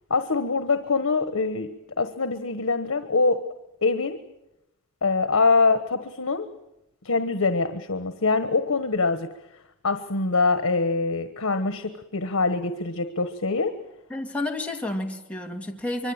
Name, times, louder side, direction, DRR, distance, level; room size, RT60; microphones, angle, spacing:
voice 1, 0.1-1.7 2.0-3.4 3.8-4.2 5.0-6.5 7.0-9.3 9.8-13.7, left 3 dB, 85° left, 9 dB, 1.4 m, -24 dB
voice 2, 14.1-16.1, left 1 dB, 5° left, 0 dB, 2.3 m, -30 dB
25.0 x 23.5 x 8.9 m, 0.89 s
head